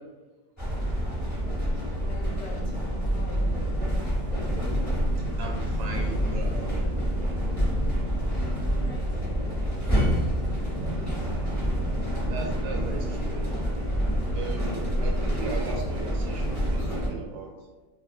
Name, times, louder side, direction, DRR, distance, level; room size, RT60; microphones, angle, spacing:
sound 1, 0.6-17.1, equal, 15° left, 0.6 m, -27 dB
voice 1, 2.0-4.1 8.5-9.7 10.1-10.8, left 2 dB, 75° left, 0 dB, 1.2 m, -45 dB
voice 2, 5.2-7.1 11.3-11.5 12.3-13.6 14.3-17.6, right 4 dB, 85° right, 1 dB, 1.3 m, -38 dB
2.9 x 2.8 x 2.3 m, 1.3 s
omnidirectional pair, 1.9 m